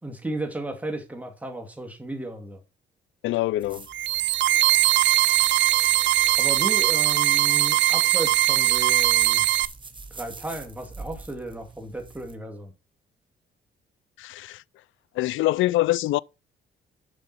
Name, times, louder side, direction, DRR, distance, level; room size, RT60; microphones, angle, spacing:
voice 1, 0.0-2.6 6.4-9.4 10.1-12.7, right 2 dB, 5° right, 2.5 m, -34 dB
voice 2, 3.2-3.9 14.2-14.6 15.2-16.2, left 17 dB, 80° left, 0.4 m, -24 dB
sound 1, 3.6-12.3, right 3 dB, 25° right, 1.4 m, -44 dB
sound 2, 3.9-9.7, right 14 dB, 65° right, 0.5 m, -20 dB
7.3 x 6.5 x 5.8 m
cardioid pair, 90°, 20 cm